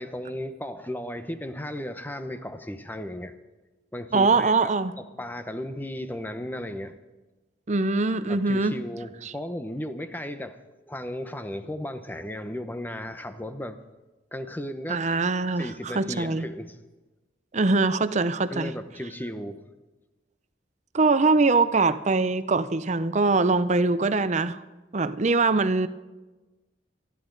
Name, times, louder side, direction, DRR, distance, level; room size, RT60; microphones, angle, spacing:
voice 1, 0.0-3.3 3.9-4.7 5.0-7.0 8.3-10.6 10.9-13.8 14.3-15.0 15.6-16.8 18.5-19.6, left 1 dB, 10° left, 9 dB, 0.8 m, -35 dB
voice 2, 4.1-4.9 7.7-8.8 9.2-9.3 14.9-16.4 17.5-18.7 20.9-24.6 24.9-25.9, right 3 dB, 40° right, 13 dB, 0.6 m, -23 dB
27.0 x 11.0 x 3.9 m, 1.2 s
head